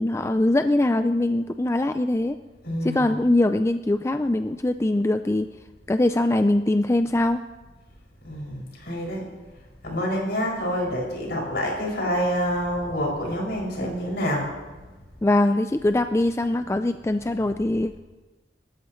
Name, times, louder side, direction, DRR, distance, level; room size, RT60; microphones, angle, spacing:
voice 1, 0.0-2.4 2.8-5.5 5.9-7.4 15.2-18.0, left 1 dB, 15° left, 9 dB, 0.4 m, -22 dB
voice 2, 2.6-3.2 8.2-9.3 9.8-14.5, equal, 65° left, -3 dB, 6.3 m, -27 dB
27.0 x 14.0 x 3.2 m, 1.2 s
head